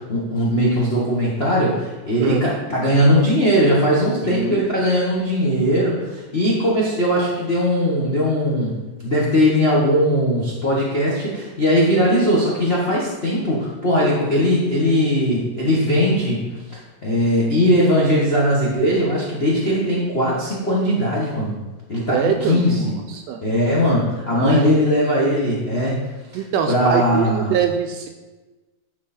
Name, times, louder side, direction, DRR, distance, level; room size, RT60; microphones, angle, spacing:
voice 1, 0.0-8.8 9.0-16.4 16.7-21.5 21.9-22.9 23.4-26.0 26.7-27.5, equal, 75° left, -6 dB, 0.5 m, -19 dB
voice 2, 4.2-4.7 22.1-23.4 24.3-24.8 26.3-28.1, right 8 dB, 80° right, 5 dB, 1.5 m, -23 dB
10.5 x 4.6 x 4.2 m, 1.2 s
omnidirectional pair, 3.3 m